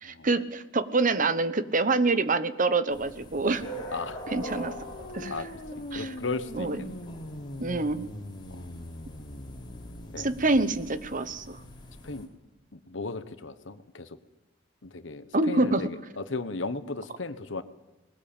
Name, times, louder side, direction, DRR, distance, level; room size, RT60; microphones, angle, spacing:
voice 1, 0.0-3.6 4.3-4.7 5.1-5.3 5.9-6.1 6.5-6.8 7.6-8.1 10.2-11.6 15.3-15.9, right 3 dB, 45° right, 13 dB, 1.0 m, -26 dB
sound 1, 2.9-12.3, equal, 25° left, 3.8 m, -44 dB
sound 2, 3.7-10.8, left 1 dB, 50° left, 1.5 m, -42 dB
voice 2, 3.9-4.2 5.3-5.5 5.8-7.0 8.5-8.9 10.1-10.3 12.0-12.3 12.7-14.2 14.8-17.6, left 3 dB, 70° left, 12 dB, 1.2 m, -36 dB
20.5 x 18.0 x 8.8 m, 1.1 s
head